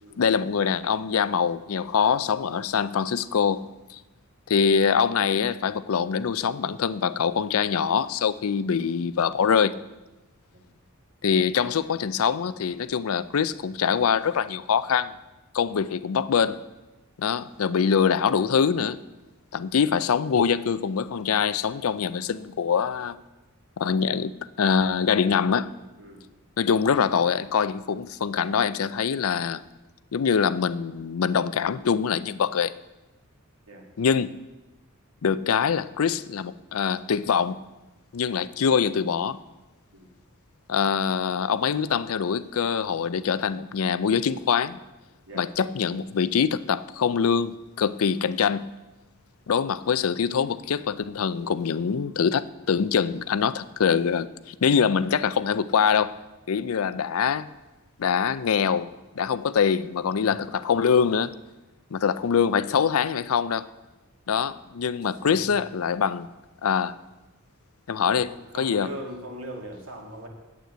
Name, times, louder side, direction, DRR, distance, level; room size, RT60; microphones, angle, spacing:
voice 1, 0.2-4.0 4.5-9.8 11.2-15.1 15.5-16.6 17.2-19.0 19.5-23.2 23.8-25.7 26.6-29.6 30.1-32.7 34.0-34.4 35.2-37.6 38.1-39.4 40.7-44.8 45.3-48.7 49.5-56.2 56.5-57.5 58.0-61.3 61.9-63.7 64.3-66.3 66.6-66.9 67.9-68.3 68.6-68.9, left 6 dB, 80° left, 0.5 m, -24 dB
voice 2, 65.2-65.6 68.1-70.3, equal, 70° right, 2.3 m, -40 dB
9.1 x 8.4 x 8.0 m
head